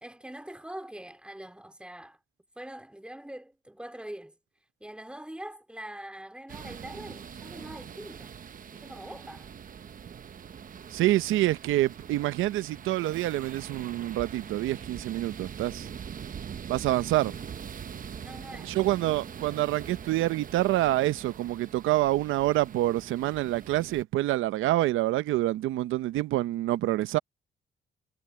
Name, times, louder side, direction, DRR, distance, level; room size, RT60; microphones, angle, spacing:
voice 1, 0.0-2.2 2.5-4.4 4.8-8.3 8.7-9.5 18.2-19.1, right 1 dB, 5° right, 3.1 m, -43 dB
sound 1, 6.5-24.0, right 7 dB, 45° right, 0.9 m, -43 dB
voice 2, 10.9-15.9 16.7-17.3 18.6-27.2, right 15 dB, 85° right, 0.7 m, -27 dB
cardioid pair, 90°, 20 cm